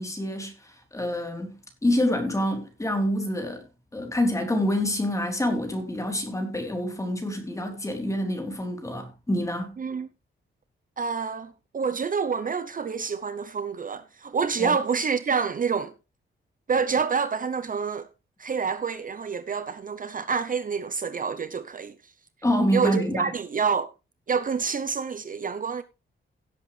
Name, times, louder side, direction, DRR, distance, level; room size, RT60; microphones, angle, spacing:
voice 1, 0.0-1.6 1.8-3.6 3.9-9.8 14.6-14.8 22.4-23.3, left 1 dB, 15° left, 3.6 m, -27 dB
voice 2, 9.8-10.1 11.0-15.9 16.7-18.1 18.4-22.1 22.7-23.9 24.3-25.8, right 5 dB, 40° right, 0.7 m, -27 dB
17.0 x 8.0 x 3.3 m
wide cardioid pair, 145°, 21 cm